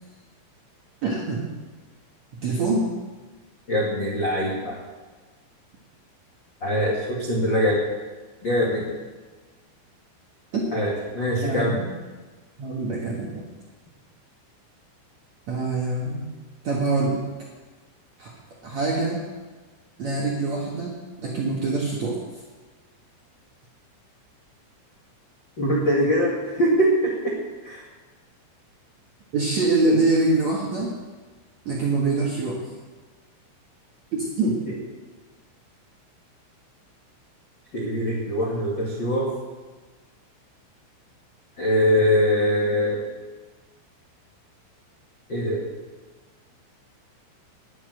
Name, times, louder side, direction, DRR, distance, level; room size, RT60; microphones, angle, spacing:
voice 1, 1.0-1.5 2.3-2.9 10.5-10.6 11.4-12.0 12.6-13.5 15.5-16.3 16.6-17.2 18.2-18.3 18.6-19.2 20.0-22.2 29.3-30.9 31.6-32.7 34.1-34.6, right 3 dB, 80° right, -3 dB, 1.5 m, -24 dB
voice 2, 3.7-4.8 6.6-7.8 8.4-8.9 10.7-11.8 25.6-27.3 27.6-27.8 37.7-39.3 41.6-43.0 45.3-45.6, equal, 60° left, -5 dB, 1.2 m, -22 dB
11.5 x 11.0 x 6.5 m, 1.3 s
omnidirectional pair, 5.9 m